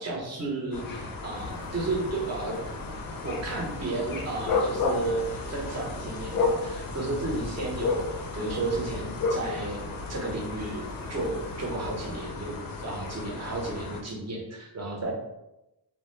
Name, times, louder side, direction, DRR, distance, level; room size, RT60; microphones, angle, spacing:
voice 1, 0.0-2.6 3.2-9.8 10.1-15.1, right 2 dB, 40° right, -1 dB, 0.7 m, -33 dB
sound 1, 0.7-14.0, left 3 dB, 55° left, 0.5 m, -33 dB
sound 2, 1.3-12.2, right 3 dB, 75° right, 0.5 m, -46 dB
2.1 x 2.0 x 3.0 m, 0.92 s
cardioid pair, 90°, 42 cm